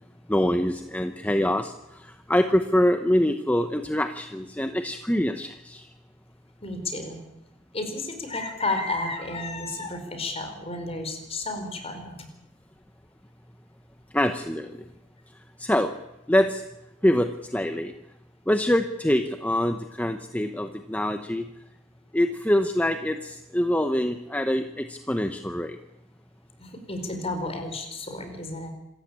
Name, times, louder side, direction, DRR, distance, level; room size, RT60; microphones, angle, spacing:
voice 1, 0.3-5.9 14.1-14.7 15.6-15.9 16.3-16.6 17.0-17.9 18.5-21.5 22.1-25.8, left 1 dB, 10° left, 8 dB, 0.9 m, -25 dB
voice 2, 6.6-7.2 7.7-12.3 26.6-28.7, left 2 dB, 30° left, 7 dB, 4.8 m, -32 dB
26.5 x 14.5 x 8.7 m, 0.92 s
head